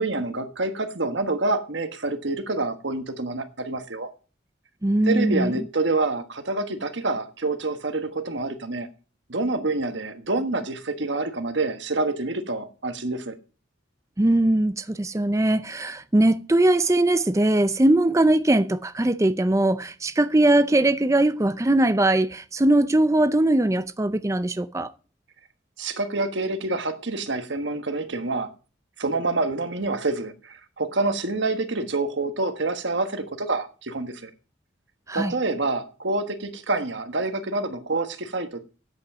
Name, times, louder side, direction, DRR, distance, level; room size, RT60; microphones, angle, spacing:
voice 1, 0.0-4.1 5.1-8.9 9.3-13.4 25.8-28.5 29.0-34.3 35.1-38.6, right 2 dB, 60° right, 1.4 m, -27 dB
voice 2, 4.8-5.6 14.2-24.9 35.1-35.3, right 1 dB, 15° right, 0.5 m, -21 dB
9.6 x 8.4 x 6.0 m
head